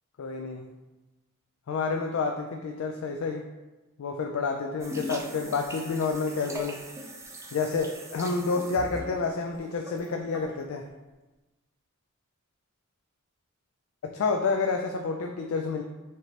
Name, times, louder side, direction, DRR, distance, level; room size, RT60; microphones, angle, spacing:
voice 1, 0.2-0.7 1.7-3.4 4.0-6.8 7.5-10.9 14.0-15.8, left 4 dB, 70° left, 3 dB, 0.4 m, -29 dB
sound 1, 4.8-10.6, right 1 dB, 15° right, 0.4 m, -41 dB
5.0 x 3.2 x 2.8 m, 1.1 s
head